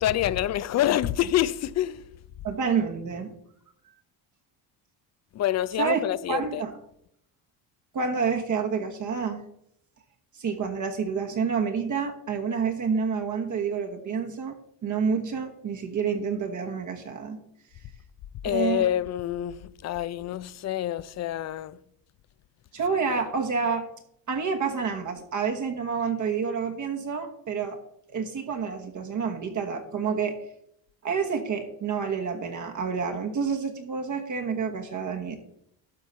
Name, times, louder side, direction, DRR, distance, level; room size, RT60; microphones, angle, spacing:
voice 1, 0.0-2.0 5.3-6.6 18.4-21.8, left 12 dB, 35° left, 0.4 m, -27 dB
voice 2, 2.4-3.3 5.8-6.0 6.3-6.8 7.9-9.4 10.3-14.5 14.8-17.4 18.4-18.8 22.7-23.8 24.3-27.8 28.1-30.4 31.0-35.4, right 6 dB, 40° right, 1.2 m, -28 dB
12.5 x 4.5 x 5.6 m
cardioid pair, 115°, 46 cm